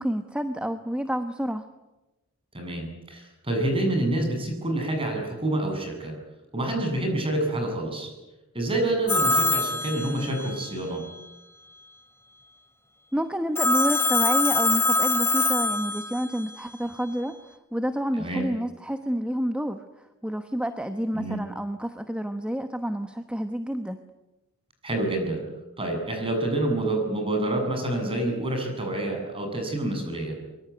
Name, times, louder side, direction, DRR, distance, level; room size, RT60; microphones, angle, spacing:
voice 1, 0.0-1.7 13.1-17.4 17.7-24.0, equal, 5° right, 8 dB, 1.1 m, -29 dB
voice 2, 2.5-6.1 6.5-8.1 8.5-11.0 18.1-18.5 21.1-21.4 24.8-25.4 25.8-30.4, right 1 dB, 25° right, 3 dB, 7.4 m, -27 dB
Telephone, 9.1-10.6 13.5-16.4, left 3 dB, 10° left, 2.6 m, -24 dB
24.0 x 23.5 x 9.5 m, 1.0 s
head